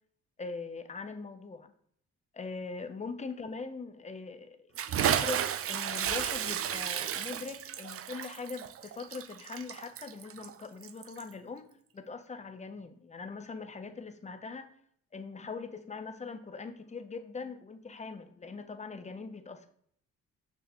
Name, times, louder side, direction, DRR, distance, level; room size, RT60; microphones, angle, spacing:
voice 1, 0.4-1.7 2.3-4.7 5.0-14.7 15.1-19.7, left 4 dB, 25° left, 9 dB, 0.8 m, -41 dB
Bathtub (filling or washing) / Splash splatter, 4.8-11.3, right 9 dB, 50° right, 0.5 m, -33 dB
6.2 x 6.0 x 3.1 m, 0.62 s
cardioid pair, 90°, 30 cm